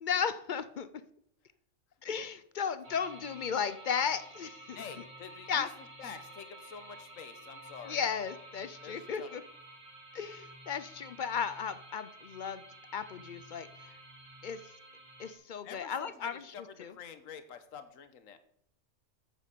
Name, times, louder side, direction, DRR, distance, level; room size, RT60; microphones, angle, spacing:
voice 1, 0.0-0.9 2.0-4.8 5.5-5.7 7.9-9.4 10.1-12.6 12.9-13.9 14.4-14.6 15.2-16.9, left 7 dB, 55° left, 13 dB, 0.5 m, -35 dB
sound 1, 2.8-15.3, right 1 dB, 80° right, 3.5 m, -51 dB
voice 2, 4.7-8.0 8.8-9.4 15.6-18.4, left 7 dB, 75° left, 9 dB, 1.3 m, -48 dB
8.9 x 7.5 x 6.7 m, 0.73 s
omnidirectional pair, 1.4 m